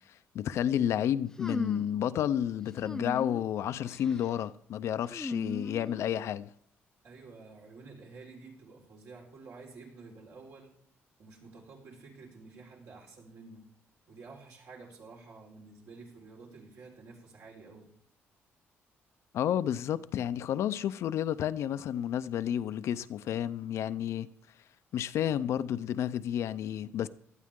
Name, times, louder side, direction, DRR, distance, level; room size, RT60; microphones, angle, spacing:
voice 1, 0.3-6.5 19.3-24.3 24.9-27.1, left 10 dB, 70° left, 0.6 m, -31 dB
sound 1, 1.4-2.0 2.8-3.5 3.9-4.3 5.1-6.3, left 2 dB, 15° left, 0.4 m, -38 dB
voice 2, 7.0-10.7 11.2-13.7 14.1-17.9, right 3 dB, 75° right, 4.7 m, -50 dB
18.0 x 12.0 x 3.7 m
cardioid pair, 120°, 5 cm